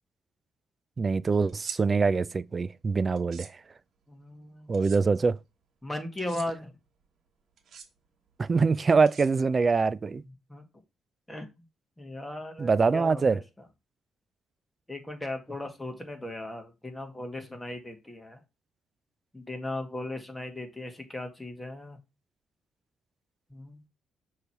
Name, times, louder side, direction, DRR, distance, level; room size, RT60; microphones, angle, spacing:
voice 1, 1.0-3.5 4.7-5.4 8.4-10.2 12.6-13.4, right 4 dB, 35° right, 0.4 m, -24 dB
sound 1, 1.5-1.8 3.2-3.5 4.7-5.0 6.2-6.5 7.6-7.9 9.1-9.7, right 6 dB, 60° right, 1.3 m, -42 dB
voice 2, 4.1-4.8 5.8-6.8 10.1-10.6 11.3-11.5 12.0-13.7 14.9-18.4 19.3-22.0 23.5-23.8, left 1 dB, 10° left, 1.8 m, -37 dB
6.6 x 3.2 x 5.7 m
cardioid pair, 90°, 0 cm